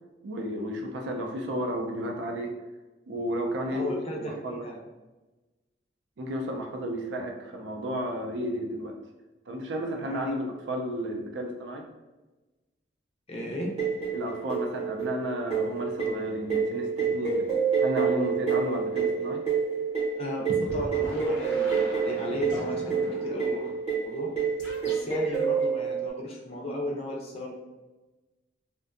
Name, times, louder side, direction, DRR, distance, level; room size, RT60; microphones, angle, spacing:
voice 1, 0.2-2.6 3.1-4.6 6.2-9.0 9.5-11.8 14.1-17.5 17.8-19.4, equal, 75° right, 2 dB, 0.4 m, -32 dB
voice 2, 3.7-4.8 10.0-10.2 13.3-13.7 20.1-23.6 23.9-24.3 24.8-27.6, equal, 30° left, -1 dB, 0.4 m, -35 dB
sound 1, 13.8-26.1, right 6 dB, 35° right, 0.7 m, -28 dB
sound 2, 20.6-23.7 24.6-25.5, left 1 dB, 75° left, 0.8 m, -40 dB
2.5 x 2.1 x 2.4 m, 1.1 s
head